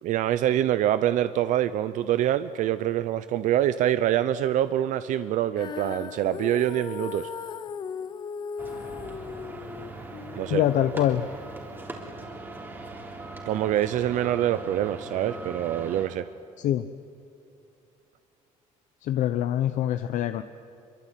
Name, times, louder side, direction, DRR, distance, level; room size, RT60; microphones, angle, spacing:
voice 1, 0.0-7.3 10.4-10.6 13.4-16.3, right 12 dB, 65° right, 13 dB, 0.7 m, -25 dB
Female singing, 5.6-11.8, left 6 dB, 35° left, 0.7 m, -38 dB
sound 1, 8.6-16.1, right 2 dB, 15° right, 3.4 m, -40 dB
voice 2, 10.5-11.2 16.6-16.9 19.0-20.4, left 11 dB, 65° left, 10 dB, 0.9 m, -24 dB
26.5 x 23.5 x 9.1 m, 2.5 s
cardioid pair, 170°, 14 cm